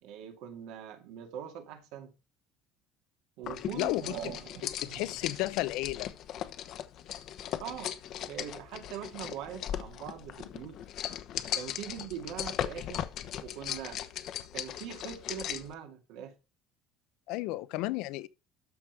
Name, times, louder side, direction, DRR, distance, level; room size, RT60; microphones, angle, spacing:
voice 1, 0.0-2.1 3.4-5.1 7.6-7.9 8.3-10.8 11.5-13.1 13.4-14.0 14.5-16.4 17.8-17.9, right 9 dB, 70° right, 2.3 m, -42 dB
sound 1, 3.4-15.7, left 11 dB, 45° left, 0.9 m, -38 dB
voice 2, 3.7-4.1 4.8-6.1 17.3-18.3, left 18 dB, 70° left, 0.7 m, -32 dB
13.0 x 5.3 x 4.8 m
cardioid pair, 170°, 0 cm